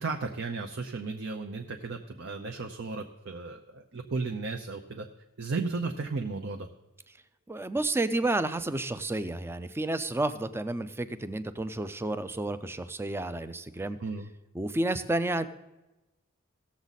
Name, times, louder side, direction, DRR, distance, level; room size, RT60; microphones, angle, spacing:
voice 1, 0.0-5.1 5.4-6.7 14.0-14.3, right 3 dB, 60° right, 4 dB, 0.7 m, -34 dB
voice 2, 7.5-14.0 14.5-15.5, right 2 dB, 10° right, 12 dB, 0.5 m, -31 dB
17.0 x 7.3 x 4.0 m, 1.0 s
head